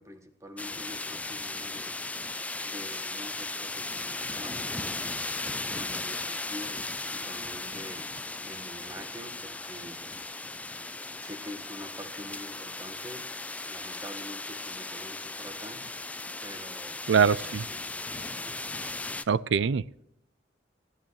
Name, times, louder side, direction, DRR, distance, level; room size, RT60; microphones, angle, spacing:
voice 1, 0.0-2.2 2.6-4.9 5.7-8.1 8.4-10.3 11.2-13.3 13.6-15.9 16.4-17.9, left 1 dB, 15° right, 7 dB, 1.2 m, -46 dB
sound 1, 0.6-19.2, left 2 dB, 10° left, 0.4 m, -37 dB
voice 2, 17.1-17.6 19.3-20.0, right 6 dB, 80° right, 20 dB, 0.4 m, -24 dB
16.0 x 12.0 x 3.1 m, 0.80 s
head